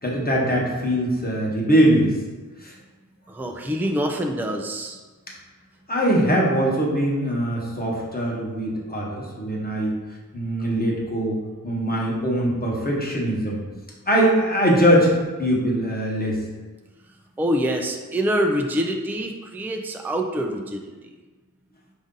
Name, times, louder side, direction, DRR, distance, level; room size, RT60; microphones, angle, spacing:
voice 1, 0.0-2.1 2.6-2.7 5.9-10.0 10.3-11.4 11.6-13.6 14.1-16.4, equal, 25° left, -3 dB, 1.1 m, -21 dB
voice 2, 3.3-5.0 17.4-20.9, equal, 5° right, 2 dB, 0.4 m, -25 dB
4.8 x 2.6 x 3.8 m, 1.3 s
wide cardioid pair, 55°, 34 cm